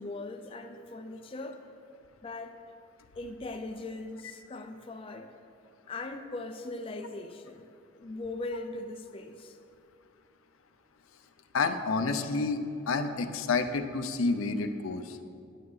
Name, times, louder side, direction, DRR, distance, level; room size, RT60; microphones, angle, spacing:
voice 1, 0.0-1.6 2.2-2.6 3.2-5.3 5.9-9.6, left 2 dB, 25° left, 5 dB, 0.4 m, -40 dB
voice 2, 11.5-15.2, left 4 dB, 90° left, 7 dB, 0.6 m, -29 dB
10.5 x 9.3 x 3.2 m, 2.5 s
head